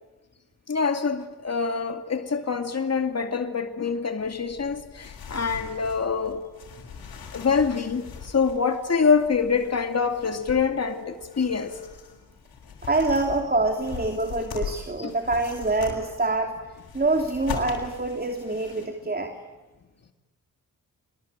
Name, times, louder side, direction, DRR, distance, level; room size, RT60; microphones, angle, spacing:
voice 1, 0.7-6.4 7.3-11.8 15.0-15.2 17.5-17.6, left 5 dB, 45° left, 2.5 m, -25 dB
sound 1, 4.2-18.9, left 6 dB, 80° left, 6.7 m, -41 dB
voice 2, 12.8-16.5 16.9-19.4, right 2 dB, 25° right, 3.0 m, -25 dB
27.5 x 21.0 x 9.0 m
cardioid pair, 80°, 36 cm